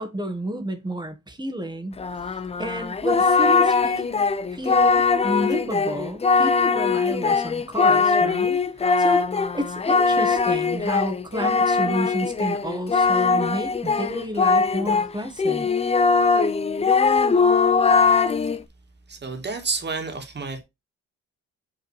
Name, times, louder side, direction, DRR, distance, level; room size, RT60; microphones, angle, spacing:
voice 1, 0.0-2.0 2.6-4.2 4.5-9.2 9.5-15.7, right 1 dB, 15° right, 1.5 m, -30 dB
Singing, 2.0-15.1 15.4-18.6, left 4 dB, 20° left, 0.5 m, -21 dB
voice 2, 19.1-20.6, right 4 dB, 35° right, 2.0 m, -30 dB
5.7 x 3.7 x 4.7 m
cardioid pair, 90°, 30 cm